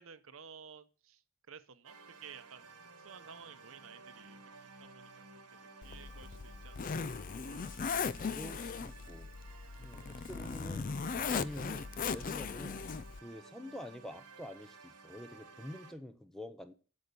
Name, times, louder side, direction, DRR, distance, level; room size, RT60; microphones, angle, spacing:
voice 1, 0.0-2.7 3.0-4.4 4.8-5.2 5.8-7.0, right 7 dB, 65° right, 0.8 m, -53 dB
sound 1, 1.8-15.9, right 4 dB, 90° right, 1.5 m, -55 dB
Zipper (clothing), 5.8-13.2, left 5 dB, 40° left, 0.4 m, -38 dB
voice 2, 8.3-9.3 9.8-10.9 11.3-12.8 13.2-16.7, left 1 dB, ahead, 0.7 m, -47 dB
8.2 x 7.5 x 6.8 m
head